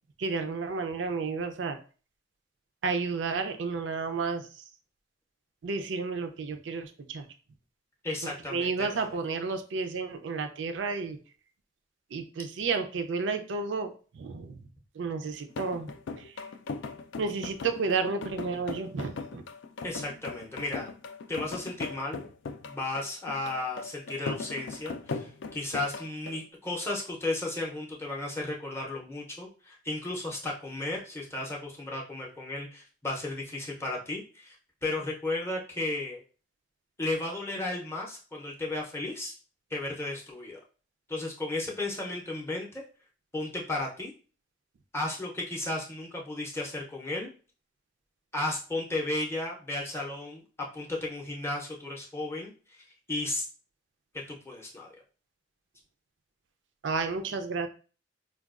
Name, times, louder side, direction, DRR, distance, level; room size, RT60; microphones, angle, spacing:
voice 1, 0.2-1.8 2.8-4.5 5.6-7.2 8.2-11.2 12.1-14.6 15.0-15.9 16.2-16.3 17.2-19.4 56.8-57.7, right 4 dB, 85° right, 7 dB, 0.4 m, -31 dB
voice 2, 8.0-9.1 19.8-20.9 21.3-22.3 22.6-34.6 34.8-36.2 37.0-39.4 39.7-40.6 41.1-42.8 43.3-44.1 44.9-47.3 48.3-50.4 50.7-52.8 53.1-53.4 54.1-54.9, left 2 dB, 15° left, -2 dB, 0.5 m, -34 dB
sound 1, 15.5-26.4, left 4 dB, 85° left, 0.3 m, -39 dB
4.5 x 2.2 x 2.4 m, 0.37 s
head